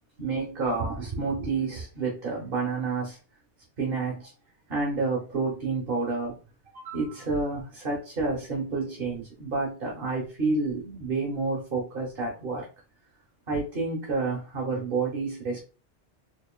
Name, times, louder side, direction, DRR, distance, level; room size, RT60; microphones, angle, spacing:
voice 1, 0.2-3.2 3.8-4.3 4.7-6.4 6.7-12.7 13.5-15.7, right 3 dB, 55° right, -2 dB, 1.2 m, -29 dB
4.1 x 3.1 x 2.2 m, 0.34 s
omnidirectional pair, 1.2 m